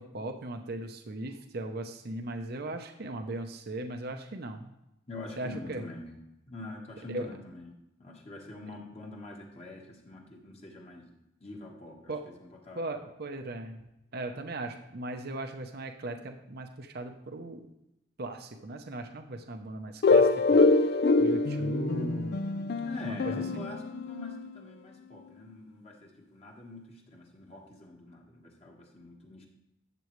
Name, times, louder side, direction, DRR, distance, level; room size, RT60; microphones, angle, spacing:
voice 1, 0.0-4.7 5.4-5.8 7.1-7.3 12.1-12.2 12.8-17.6 18.2-20.9 21.2-22.4 23.0-23.7, right 2 dB, 50° right, 5 dB, 0.7 m, -38 dB
voice 2, 5.1-6.1 6.5-11.1 11.4-13.0 22.8-29.5, left 2 dB, 30° left, 0 dB, 1.4 m, -45 dB
sound 1, 20.0-24.6, left 3 dB, 50° left, 0.4 m, -25 dB
12.0 x 7.7 x 3.2 m, 0.88 s
head